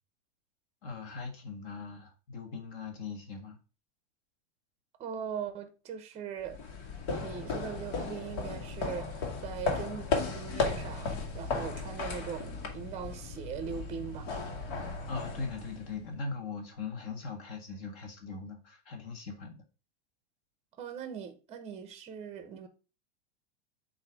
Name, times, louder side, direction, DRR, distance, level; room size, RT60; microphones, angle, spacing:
voice 1, 0.8-3.6 15.1-19.6, left 4 dB, 45° left, 1.6 m, -40 dB
voice 2, 5.0-6.6 7.2-14.3 20.8-22.7, right 7 dB, 20° right, 0.7 m, -40 dB
sound 1, 6.4-16.1, left 4 dB, 65° left, 1.8 m, -35 dB
7.9 x 2.7 x 4.7 m
supercardioid pair, 150°, 34 cm